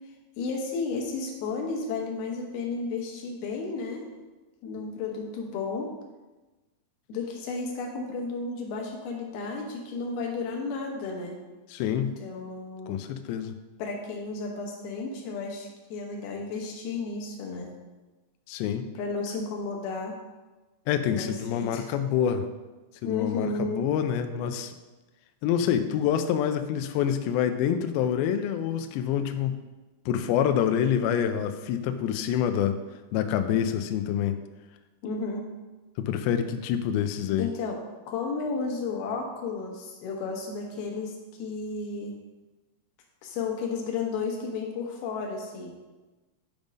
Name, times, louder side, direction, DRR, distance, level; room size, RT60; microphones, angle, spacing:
voice 1, 0.4-4.1 4.6-5.9 7.1-11.4 12.2-13.0 13.8-17.7 18.9-20.2 21.1-21.9 23.0-23.9 35.0-35.5 37.4-37.8 38.1-42.2 43.2-45.7, left 4 dB, 70° left, 1 dB, 2.9 m, -33 dB
voice 2, 11.7-12.1 12.9-13.6 18.5-18.9 20.9-22.5 23.0-24.7 25.4-29.6 30.1-32.8 33.1-34.4 36.0-37.5, left 9 dB, 90° left, 8 dB, 2.1 m, -26 dB
10.5 x 3.5 x 5.2 m, 1.2 s
omnidirectional pair, 4.9 m